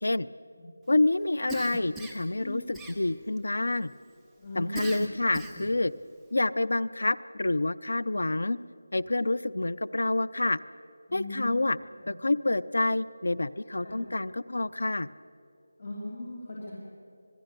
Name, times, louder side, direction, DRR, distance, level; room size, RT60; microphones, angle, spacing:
voice 1, 0.9-3.9 4.5-5.9 6.3-8.6 8.9-10.6 11.1-11.8 12.1-15.1, left 2 dB, 75° left, 18 dB, 0.5 m, -28 dB
Cough, 1.5-2.3 2.7-3.4 4.8-5.8, right 2 dB, ahead, 0.6 m, -39 dB
voice 2, 4.4-4.8 11.1-11.5 12.0-12.1 13.8-14.0 15.8-16.7, left 2 dB, 30° left, -5 dB, 3.1 m, -38 dB
26.0 x 20.0 x 6.7 m, 2.7 s
figure-of-eight pair, 180°, 0 cm